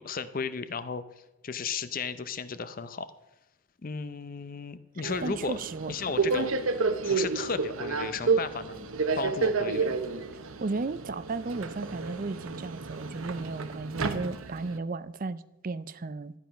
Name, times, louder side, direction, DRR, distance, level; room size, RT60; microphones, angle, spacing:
voice 1, 0.0-1.0 1.4-3.1 3.8-5.6 5.9-6.5 7.0-10.0, left 5 dB, 40° left, 13 dB, 0.5 m, -34 dB
Subway metro underground, 5.0-14.8, right 4 dB, 70° right, 0.9 m, -30 dB
voice 2, 5.2-5.9 10.3-16.3, right 3 dB, 40° right, 16 dB, 0.4 m, -35 dB
13.0 x 9.2 x 5.7 m, 0.96 s
head